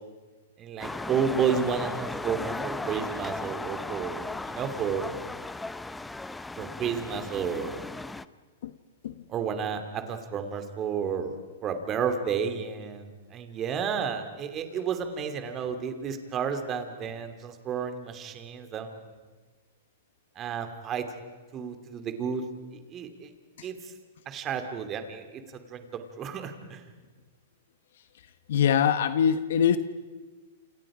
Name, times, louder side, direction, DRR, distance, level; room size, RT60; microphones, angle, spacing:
voice 1, 0.6-5.2 6.6-7.8 9.3-11.4 11.6-19.0 20.4-21.1 21.5-22.4 22.7-23.3 23.6-23.9 24.3-26.9, right 7 dB, 25° right, 7 dB, 2.8 m, -31 dB
sound 1, 0.8-8.2, left 2 dB, 5° left, 0.6 m, -36 dB
voice 2, 28.5-29.8, left 8 dB, 70° left, 11 dB, 1.1 m, -23 dB
29.5 x 28.0 x 5.1 m, 1.3 s
hypercardioid pair, 140°, 0 cm